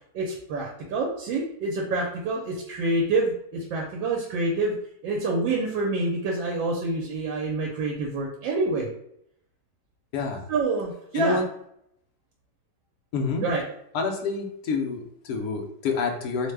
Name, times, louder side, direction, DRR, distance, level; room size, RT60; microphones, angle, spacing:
voice 1, 0.1-4.7 5.0-8.9 10.5-11.4 13.4-13.6, right 2 dB, 85° right, -2 dB, 1.3 m, -27 dB
voice 2, 10.1-10.4 11.1-11.4 13.1-13.5 13.9-16.5, left 4 dB, 75° left, 3 dB, 0.8 m, -27 dB
3.1 x 2.1 x 3.3 m, 0.72 s
omnidirectional pair, 2.0 m